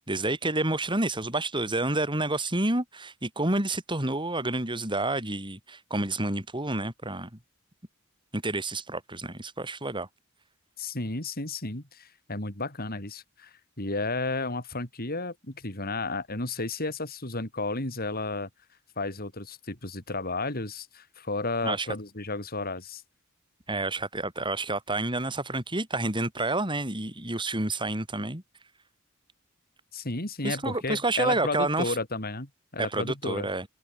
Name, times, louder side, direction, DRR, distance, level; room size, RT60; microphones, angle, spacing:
voice 1, 0.1-7.3 8.3-10.1 21.6-21.9 23.7-28.4 30.4-32.0 32.8-33.7, right 2 dB, 25° right, 5.4 m, -29 dB
voice 2, 10.8-18.5 19.0-23.0 29.9-33.5, left 3 dB, 45° left, 4.9 m, -33 dB
head